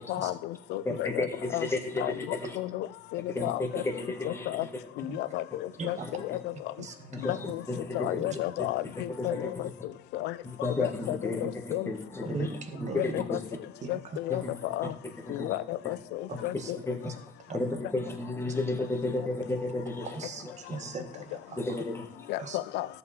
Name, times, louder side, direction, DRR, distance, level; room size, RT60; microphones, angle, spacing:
voice 1, 0.1-1.3 1.5-1.7 2.0-2.9 3.1-3.8 4.2-4.7 5.0-6.5 7.3-7.6 7.9-9.7 10.1-10.3 10.8-11.9 12.4-12.5 13.0-13.4 13.9-14.4 14.7-14.9 15.3-16.8 22.3-22.9, left 16 dB, 85° left, 0.6 m, -33 dB
voice 2, 0.9-2.6 3.3-4.6 6.0-6.4 7.1-8.2 9.1-9.5 10.4-13.4 14.3-14.6 15.0-15.6 15.8-15.9 16.4-17.2 17.5-20.3 20.7-20.9 21.6-22.3, left 2 dB, 15° left, 1.8 m, -33 dB
voice 3, 6.8-7.3 12.2-13.1 13.8-14.0 14.3-14.4 14.8-14.9 16.3-16.7 17.0-17.1 17.5-17.6 20.1-21.6 22.4-22.6, right 4 dB, 45° right, 1.6 m, -39 dB
13.5 x 7.1 x 4.4 m
cardioid pair, 110°, 17 cm